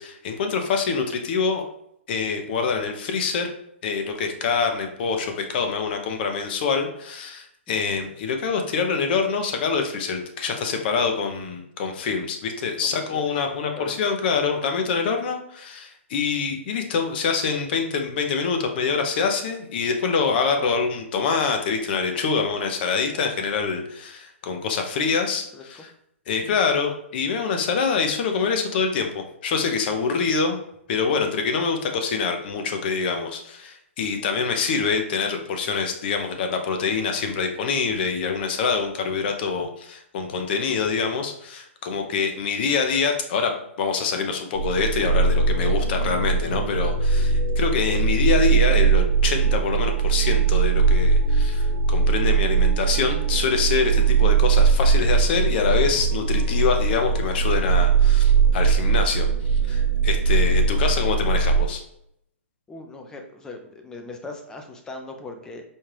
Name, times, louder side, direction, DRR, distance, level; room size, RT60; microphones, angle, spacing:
voice 1, 0.0-1.6 2.1-3.5 3.8-25.9 26.3-30.6 30.9-43.5 43.8-61.8, left 5 dB, 50° left, 5 dB, 0.7 m, -25 dB
voice 2, 12.8-13.3 13.8-13.9 25.5-25.8 26.4-26.6 34.5-34.6 62.7-65.6, left 2 dB, 10° left, 4 dB, 0.4 m, -40 dB
sound 1, 44.6-61.7, right 5 dB, 45° right, 0.7 m, -20 dB
4.4 x 2.4 x 3.2 m, 0.74 s
hypercardioid pair, 145°, 7 cm